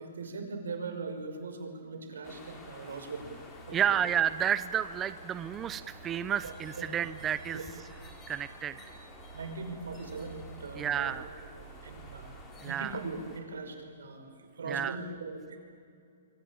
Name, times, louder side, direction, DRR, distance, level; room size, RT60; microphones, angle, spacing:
voice 1, 0.0-3.3 3.7-4.0 6.4-6.9 7.5-7.6 9.3-11.1 11.5-12.3 12.6-15.6, right 3 dB, 85° right, 5 dB, 5.5 m, -40 dB
sound 1, 2.2-13.4, left 3 dB, 15° left, 4.0 m, -52 dB
sound 2, 3.1-12.4, right 6 dB, 55° right, 3.2 m, -51 dB
voice 2, 3.7-7.6 8.3-8.9 10.8-11.3 12.6-12.9 14.7-15.0, right 9 dB, 15° right, 14 dB, 0.6 m, -31 dB
26.5 x 24.5 x 8.8 m, 2.4 s
hypercardioid pair, 155°, 0 cm